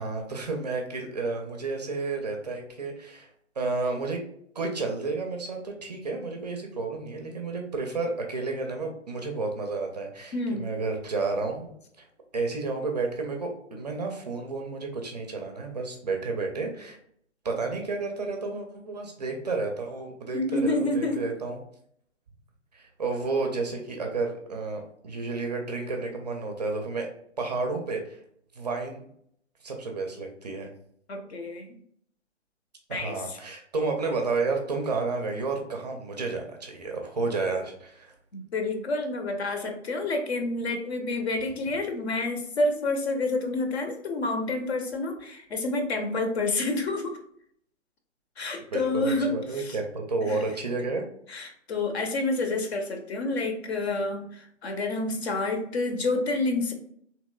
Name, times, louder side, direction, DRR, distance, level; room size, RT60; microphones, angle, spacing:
voice 1, 0.0-3.3 3.6-4.2 4.5-11.7 12.0-12.1 12.3-17.0 17.4-21.6 22.7-27.1 27.4-28.2 28.6-29.0 29.6-30.7 32.9-38.1 39.4-39.5 48.7-51.0, right 3 dB, 35° right, 3 dB, 0.4 m, -31 dB
voice 2, 10.3-10.7 20.3-21.3 31.1-31.7 32.9-33.4 38.3-47.2 48.4-49.8 50.2-50.5 51.3-56.7, left 2 dB, 60° left, 5 dB, 0.7 m, -29 dB
3.0 x 2.9 x 2.2 m, 0.67 s
figure-of-eight pair, 135°, 37 cm